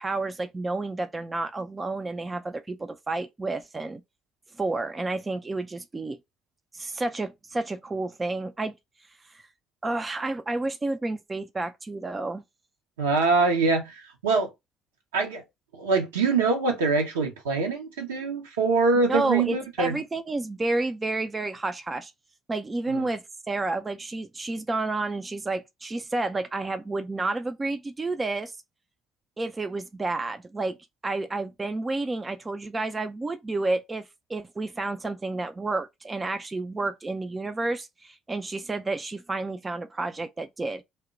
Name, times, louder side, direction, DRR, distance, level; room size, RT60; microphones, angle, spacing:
voice 1, 0.0-4.0 4.6-6.2 6.7-8.7 9.3-9.4 9.8-12.4 19.1-22.1 22.5-28.5 29.4-30.8 31.0-34.0 34.3-40.8, right 2 dB, 25° right, 0.4 m, -30 dB
voice 2, 13.0-14.5 15.1-15.4 15.7-20.0 22.9-23.1, right 4 dB, 75° right, 0.7 m, -24 dB
2.1 x 2.1 x 3.8 m
figure-of-eight pair, 50°, 0 cm